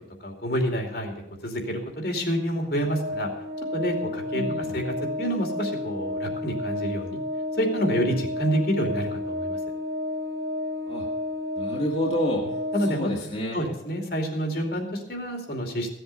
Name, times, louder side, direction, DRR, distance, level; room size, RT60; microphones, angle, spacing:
voice 1, 0.2-1.1 1.4-3.3 3.7-4.4 4.7-7.2 7.6-9.6 12.7-13.1 13.5-15.9, equal, 55° left, 3 dB, 2.7 m, -28 dB
Organ, 2.8-13.5, left 2 dB, 50° right, 1.9 m, -31 dB
voice 2, 4.3-4.7 10.9-11.1 11.6-12.5 12.8-13.6, equal, 35° left, -2 dB, 1.8 m, -29 dB
15.5 x 8.0 x 6.7 m, 0.81 s
head